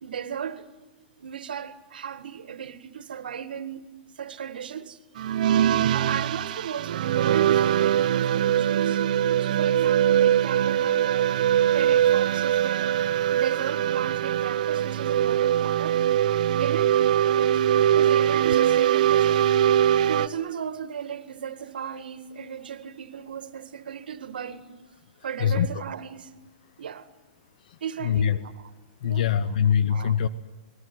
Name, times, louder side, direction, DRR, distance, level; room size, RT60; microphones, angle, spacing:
voice 1, 0.0-0.7 1.2-3.9 4.2-5.0 5.9-9.0 9.4-11.4 11.7-13.0 13.3-16.0 16.6-17.0 17.4-17.6 18.0-19.5 20.1-24.7 25.2-26.3 26.8-27.1 27.8-28.5 29.0-29.3 29.9-30.2, right 8 dB, 85° right, 1.8 m, -36 dB
sound 1, 5.2-20.3, right 10 dB, 60° right, 0.8 m, -22 dB
voice 2, 25.4-25.8 27.7-28.4 29.0-30.3, left 8 dB, 60° left, 1.0 m, -24 dB
28.0 x 20.5 x 9.2 m
hypercardioid pair, 150°, 5 cm